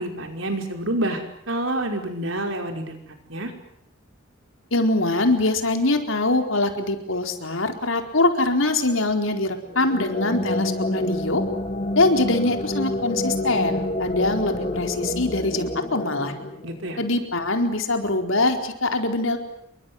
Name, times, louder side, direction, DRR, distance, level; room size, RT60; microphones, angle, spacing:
voice 1, 0.0-3.0 3.3-3.5 16.6-17.0, right 1 dB, 65° right, 4 dB, 5.5 m, -28 dB
voice 2, 4.7-11.4 11.9-16.3 17.0-19.4, left 2 dB, 70° left, 5 dB, 4.4 m, -23 dB
sound 1, 9.7-17.1, left 1 dB, 35° left, 2.4 m, -28 dB
28.5 x 24.0 x 7.9 m, 0.73 s
head